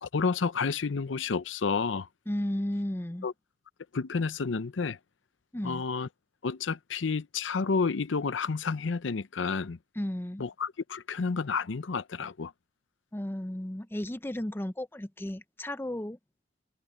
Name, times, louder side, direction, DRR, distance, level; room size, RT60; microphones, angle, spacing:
voice 1, 0.0-2.1 3.2-3.3 3.9-5.0 5.6-6.1 6.4-9.8 10.4-12.5, left 5 dB, 85° left, 0.6 m, -30 dB
voice 2, 2.3-3.3 5.5-5.8 10.0-10.4 13.1-16.2, left 1 dB, 10° left, 0.6 m, -34 dB
head